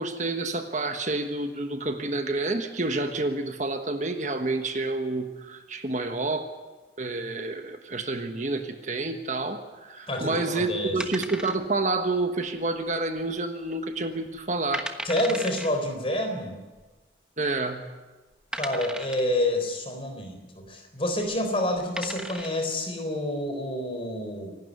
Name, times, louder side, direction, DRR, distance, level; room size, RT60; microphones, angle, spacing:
voice 1, 0.0-6.5 7.0-14.9 17.4-17.9, right 2 dB, 40° right, 7 dB, 1.3 m, -29 dB
voice 2, 10.1-10.9 15.0-16.5 18.5-24.6, left 1 dB, 30° left, 5 dB, 3.9 m, -28 dB
sound 1, 11.0-12.0 12.2-12.3 12.9-13.3 13.7-13.8 14.4-14.5 14.7-15.7 16.8-16.9 17.6-17.7 18.5-19.4 21.2-21.4 21.8-22.6, right 1 dB, 5° right, 1.2 m, -36 dB
26.0 x 12.0 x 9.5 m, 1.2 s
head